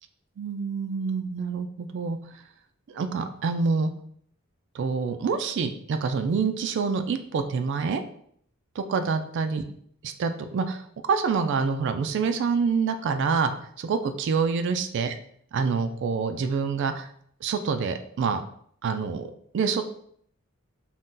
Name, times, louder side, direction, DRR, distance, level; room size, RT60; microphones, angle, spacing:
voice 1, 0.4-2.2 2.9-3.9 4.7-8.0 8.8-9.6 10.0-10.8 11.1-13.5 13.8-15.1 15.5-17.1 17.4-18.4 18.8-19.3 19.5-19.8, right 5 dB, 55° right, 8 dB, 0.3 m, -26 dB
2.6 x 2.2 x 3.7 m, 0.63 s
head